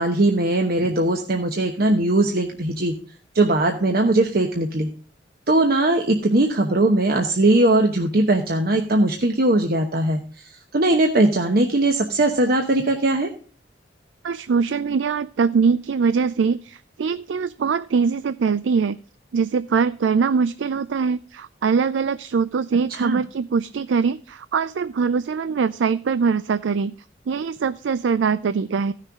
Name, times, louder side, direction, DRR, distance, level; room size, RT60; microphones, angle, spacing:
voice 1, 0.0-2.9 3.3-4.9 5.5-10.2 10.7-13.3 22.9-23.2, right 2 dB, 55° right, 4 dB, 1.0 m, -19 dB
voice 2, 14.2-19.0 19.3-26.9 27.3-28.9, right 5 dB, 75° right, 15 dB, 0.4 m, -22 dB
15.5 x 6.5 x 3.6 m, 0.41 s
head